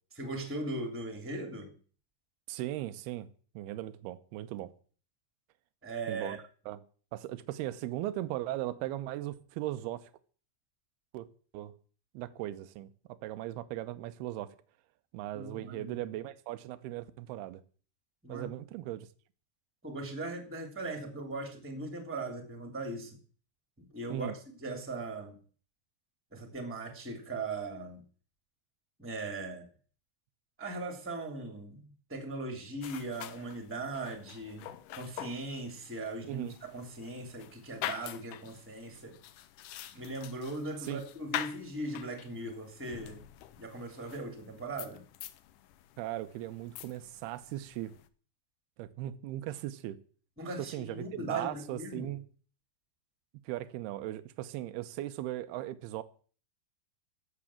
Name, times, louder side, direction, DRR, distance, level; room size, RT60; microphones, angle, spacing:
voice 1, 0.2-1.7 5.8-6.4 15.3-16.0 18.2-18.5 19.8-23.2 23.9-24.3 24.6-25.4 26.3-28.0 29.0-29.7 30.6-31.8 32.1-39.2 39.9-43.2 43.6-45.0 50.4-52.1, right 2 dB, 5° right, 2.1 m, -39 dB
voice 2, 2.5-3.3 3.6-4.7 6.1-6.4 6.7-6.8 7.1-10.1 11.1-11.3 11.5-11.7 12.1-14.6 15.1-17.6 18.3-19.1 24.1-24.3 36.2-36.6 40.8-41.0 46.0-47.9 48.8-50.0 50.6-52.2 53.5-56.0, right 14 dB, 75° right, 2.7 m, -38 dB
sound 1, 32.8-48.1, left 12 dB, 85° left, 1.8 m, -45 dB
15.0 x 7.4 x 7.3 m
omnidirectional pair, 4.8 m